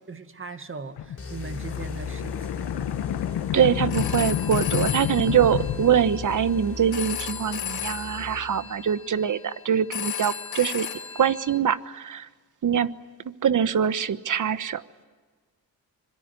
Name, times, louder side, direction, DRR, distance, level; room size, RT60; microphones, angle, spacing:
voice 1, 0.1-2.8, right 4 dB, 35° right, 9 dB, 2.1 m, -39 dB
sound 1, 1.0-6.8, left 11 dB, 90° left, 1.4 m, -30 dB
sound 2, 1.2-8.8, left 5 dB, 35° left, 4.3 m, -37 dB
voice 2, 3.5-10.9 11.1-12.3 12.6-12.9 13.2-15.0, right 8 dB, 50° right, 14 dB, 1.3 m, -24 dB
Telephone, 3.7-11.6, left 9 dB, 75° left, 4.0 m, -36 dB
25.5 x 22.5 x 9.7 m, 1.4 s
cardioid pair, 85°, 38 cm